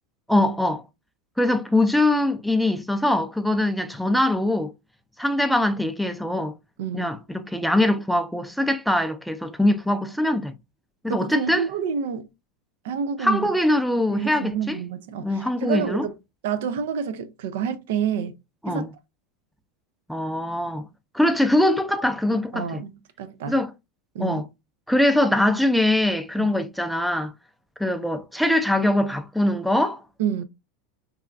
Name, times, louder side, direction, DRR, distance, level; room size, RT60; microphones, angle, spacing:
voice 1, 0.3-0.8 1.4-4.7 5.2-6.5 6.9-10.5 11.0-11.7 13.2-14.8 15.2-16.0 18.6-18.9 20.1-20.8 21.1-22.8 23.5-23.7 24.2-24.4 24.9-27.3 27.8-30.0, left 1 dB, ahead, 0.3 m, -22 dB
voice 2, 11.1-12.3 12.8-13.5 14.1-16.1 16.4-18.3 18.7-18.8 22.5-23.6 24.1-24.4 26.4-26.5 30.2-30.4, right 7 dB, 80° right, 0.4 m, -28 dB
3.3 x 2.3 x 2.3 m
supercardioid pair, 135°, 0 cm